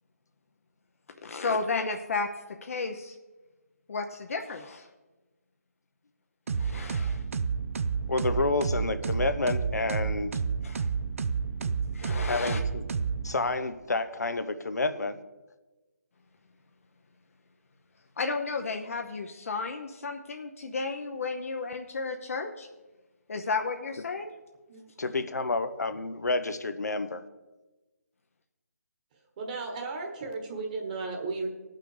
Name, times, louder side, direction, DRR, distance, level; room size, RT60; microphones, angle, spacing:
voice 1, 1.2-3.2 3.9-4.9 6.5-7.2 10.6-10.9 11.9-12.6 18.2-22.7 23.3-24.3, left 4 dB, 60° left, 4 dB, 0.9 m, -33 dB
sound 1, 6.5-13.6, right 5 dB, 55° right, 0.5 m, -30 dB
voice 2, 8.1-10.4 12.3-12.8 13.2-15.2 25.0-27.2, left 3 dB, 85° left, 10 dB, 0.9 m, -29 dB
voice 3, 29.1-31.5, right 3 dB, 30° right, 2 dB, 1.4 m, -35 dB
17.0 x 5.8 x 4.9 m, 1.1 s
figure-of-eight pair, 160°, 9 cm